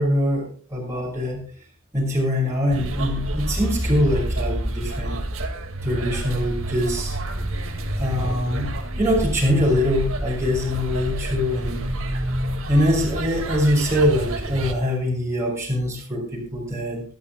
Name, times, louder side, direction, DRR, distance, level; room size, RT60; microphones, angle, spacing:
voice 1, 0.0-1.4 1.9-5.2 5.8-7.1 8.0-11.8 12.7-17.0, equal, 15° right, -4 dB, 6.3 m, -23 dB
sound 1, 2.7-14.7, right 1 dB, 70° right, 2.2 m, -28 dB
25.5 x 12.0 x 2.3 m, 0.36 s
head